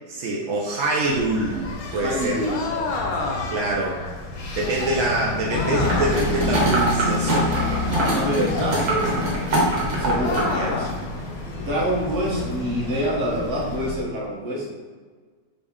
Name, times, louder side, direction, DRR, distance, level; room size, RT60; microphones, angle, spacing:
voice 1, 0.1-2.5 3.5-4.0 4.5-7.5 10.4-10.7, right 2 dB, 70° right, -3 dB, 0.8 m, -25 dB
Engine, 1.1-14.0, left 2 dB, 85° left, 1.5 m, -29 dB
voice 2, 1.9-2.7 8.1-9.7 10.0-10.9 11.6-14.7, equal, 45° right, -4 dB, 1.2 m, -26 dB
sound 1, 2.5-3.7 5.5-6.3 7.9-8.6 10.2-11.0, left 3 dB, 70° left, 0.9 m, -28 dB
sound 2, 5.9-10.5 10.9-11.0, right 2 dB, 85° right, 1.7 m, -24 dB
4.0 x 3.5 x 3.5 m, 1.5 s
omnidirectional pair, 1.9 m